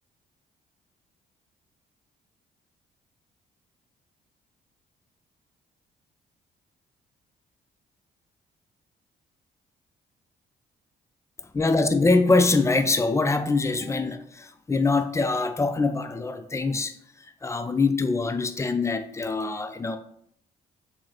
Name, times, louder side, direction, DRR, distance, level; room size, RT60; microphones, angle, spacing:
voice 1, 11.5-17.0 17.4-20.0, left 3 dB, 15° left, 0.4 m, -23 dB
3.0 x 2.0 x 3.6 m
supercardioid pair, 60°, 18 cm